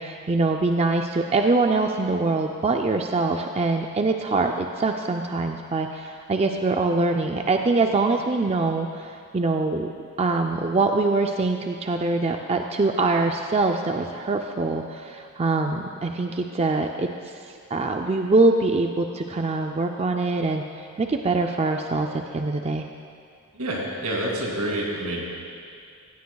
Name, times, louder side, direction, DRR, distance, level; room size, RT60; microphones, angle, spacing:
voice 1, 0.0-9.1 9.3-9.9 10.2-17.1 17.7-20.6 21.0-22.9, right 3 dB, 30° right, 4 dB, 0.4 m, -23 dB
voice 2, 23.5-25.2, right 1 dB, 85° right, -2 dB, 2.6 m, -28 dB
16.5 x 15.5 x 2.3 m, 2.3 s
head